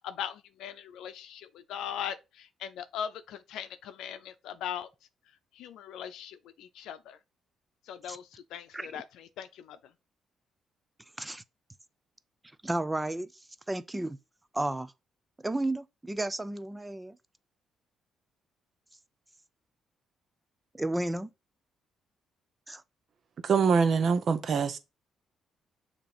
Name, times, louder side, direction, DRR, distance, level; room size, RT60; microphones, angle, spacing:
voice 1, 0.0-4.9 5.6-7.2 7.9-9.8, left 9 dB, 85° left, 0.6 m, -40 dB
voice 2, 12.6-13.3 13.7-14.2 14.5-14.9 15.4-17.2 20.7-21.3 22.7-22.8, right 1 dB, 10° right, 0.5 m, -32 dB
voice 3, 23.4-24.8, right 5 dB, 55° right, 0.9 m, -24 dB
6.8 x 2.9 x 5.0 m
cardioid pair, 90°, 0 cm